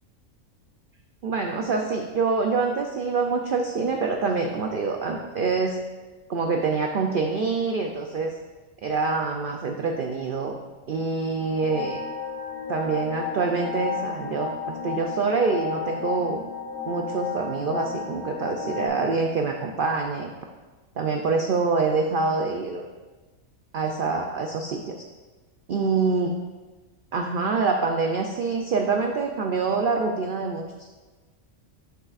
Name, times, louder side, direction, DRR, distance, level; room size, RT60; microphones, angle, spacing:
voice 1, 1.2-5.8 6.3-8.3 8.8-10.6 10.9-12.0 12.7-16.4 16.9-20.3 21.0-22.9 23.7-25.1 25.7-26.3 27.1-30.9, right 4 dB, 85° right, 3 dB, 0.4 m, -26 dB
sound 1, 11.6-18.9, left 6 dB, 35° left, 1.2 m, -33 dB
7.9 x 6.6 x 2.4 m, 1.3 s
omnidirectional pair, 1.5 m